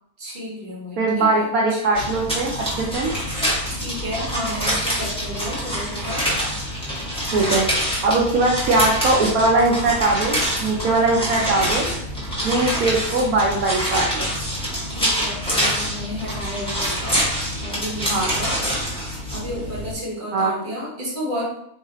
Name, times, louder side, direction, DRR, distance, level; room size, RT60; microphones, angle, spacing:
voice 1, 0.2-1.8 3.7-6.3 14.9-17.3 17.6-18.6 19.3-21.4, left 1 dB, 35° right, -5 dB, 1.3 m, -32 dB
voice 2, 1.0-3.1 7.3-7.7 8.0-11.9 12.3-14.3 18.1-18.3 20.3-20.5, right 2 dB, 80° right, -1 dB, 1.1 m, -20 dB
sound 1, 1.9-19.9, equal, 5° left, 1.1 m, -26 dB
3.2 x 2.6 x 3.8 m, 0.74 s
omnidirectional pair, 1.5 m